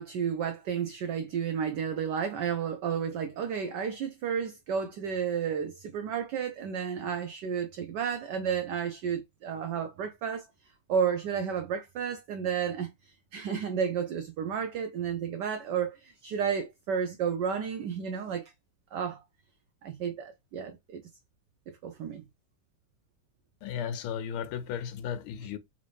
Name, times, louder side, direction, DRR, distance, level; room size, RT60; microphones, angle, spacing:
voice 1, 0.0-10.5 10.9-18.5 18.9-19.2 19.8-21.0 21.8-22.3, right 7 dB, 85° right, 0.9 m, -32 dB
voice 2, 23.6-25.6, left 8 dB, 80° left, 1.5 m, -35 dB
3.6 x 2.6 x 3.2 m
omnidirectional pair, 2.4 m